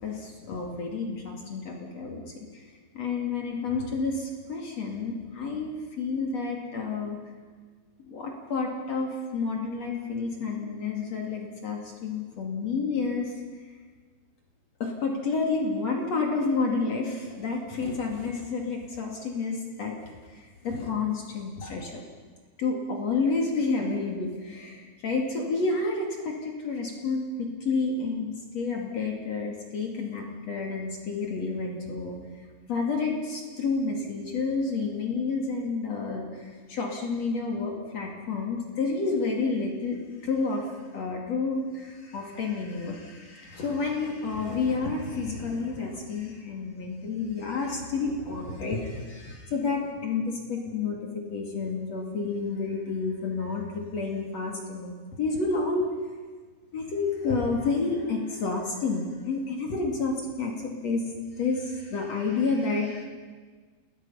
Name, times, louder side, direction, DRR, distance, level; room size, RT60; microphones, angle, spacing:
voice 1, 0.0-2.2 3.0-7.2 8.1-13.3 14.8-20.0 20.6-22.0 22.6-32.2 32.7-40.0 40.2-40.6 40.9-51.0 51.3-55.9 56.7-61.0 61.4-63.1, left 4 dB, 55° left, 0 dB, 3.5 m, -30 dB
29.0 x 21.5 x 5.7 m, 1.5 s
omnidirectional pair, 3.7 m